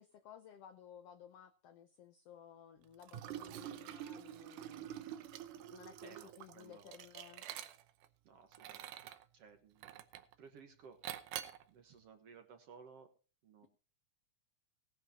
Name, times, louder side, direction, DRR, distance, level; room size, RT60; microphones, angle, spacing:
voice 1, 0.0-4.9 5.5-7.5, left 9 dB, 70° left, 9 dB, 1.5 m, -57 dB
Liquid, 3.0-8.1 8.5-9.2 9.8-10.3 11.0-11.6, right 12 dB, 85° right, 2.4 m, -47 dB
voice 2, 6.0-7.0 8.2-8.9 9.3-10.0 10.4-11.0 11.7-13.1 13.4-13.7, right 6 dB, 60° right, 6 dB, 2.0 m, -58 dB
18.0 x 11.0 x 2.8 m, 0.35 s
omnidirectional pair, 3.5 m